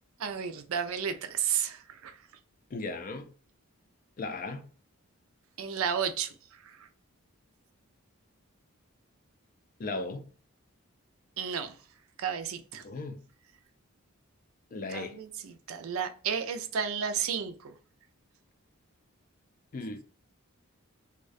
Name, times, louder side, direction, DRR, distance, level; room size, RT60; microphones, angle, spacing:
voice 1, 0.2-2.1 5.6-6.3 6.6-6.8 11.4-11.7 12.2-12.8 14.9-17.7, right 7 dB, 75° right, 0.4 m, -32 dB
voice 2, 2.7-3.3 4.2-4.7 9.8-10.3 12.8-13.2 14.7-15.2 19.7-20.0, left 3 dB, 40° left, 0.3 m, -36 dB
2.3 x 2.2 x 2.4 m
head